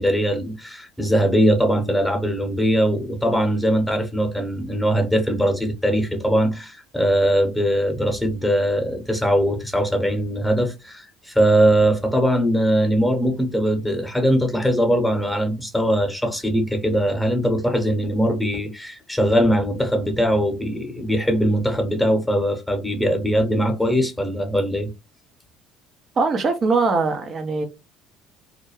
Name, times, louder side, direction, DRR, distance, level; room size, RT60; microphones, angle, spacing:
voice 1, 0.0-24.9, equal, 5° left, 0.9 m, -21 dB
voice 2, 26.2-27.6, right 4 dB, 40° right, 0.5 m, -21 dB
2.4 x 2.1 x 3.1 m
figure-of-eight pair, 60°, 0 cm